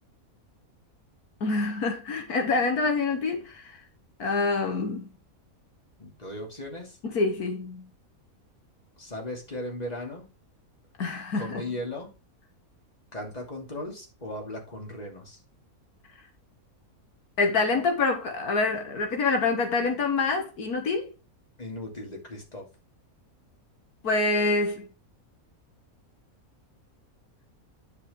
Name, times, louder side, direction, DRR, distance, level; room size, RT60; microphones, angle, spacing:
voice 1, 1.4-3.8 4.2-5.1 7.0-7.9 11.0-11.6 17.4-21.1 24.0-24.9, left 3 dB, 90° left, 2.0 m, -26 dB
voice 2, 6.0-7.0 9.0-10.3 11.4-12.1 13.1-15.4 21.6-22.7, left 1 dB, 25° left, 2.7 m, -37 dB
9.7 x 5.1 x 3.6 m
omnidirectional pair, 1.5 m